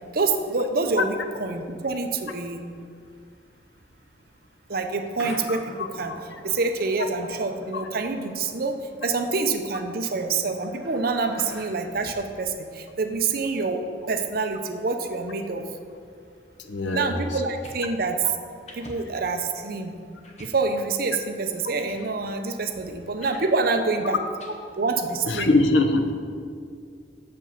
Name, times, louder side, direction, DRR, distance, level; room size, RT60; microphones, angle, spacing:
voice 1, 0.1-2.6 4.7-6.1 6.4-15.6 16.9-18.2 18.7-19.9 20.4-24.2 24.8-25.5, right 3 dB, 50° right, 6 dB, 0.6 m, -26 dB
sound 1, 5.2-11.7, equal, ahead, 2.2 m, -46 dB
voice 2, 16.6-17.2 25.3-26.1, left 2 dB, 75° left, 6 dB, 0.7 m, -22 dB
sound 2, 17.5-17.8 18.7-19.0 19.5-19.6 20.2-20.6 21.4-21.5 21.7-22.0 23.2-23.5 24.4-24.5, left 1 dB, 35° left, 1.0 m, -45 dB
6.8 x 5.3 x 7.1 m, 2.3 s
head